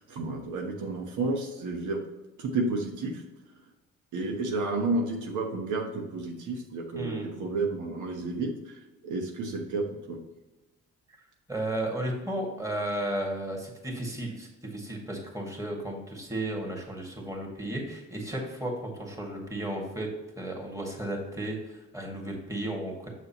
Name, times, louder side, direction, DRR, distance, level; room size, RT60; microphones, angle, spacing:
voice 1, 0.1-2.0 2.4-3.2 4.1-10.2, right 3 dB, 80° right, 2 dB, 1.2 m, -31 dB
voice 2, 7.0-7.4 11.2-20.1 20.4-23.1, right 1 dB, 10° right, 0 dB, 2.1 m, -34 dB
6.7 x 6.4 x 3.0 m, 1.1 s
cardioid pair, 90°, 30 cm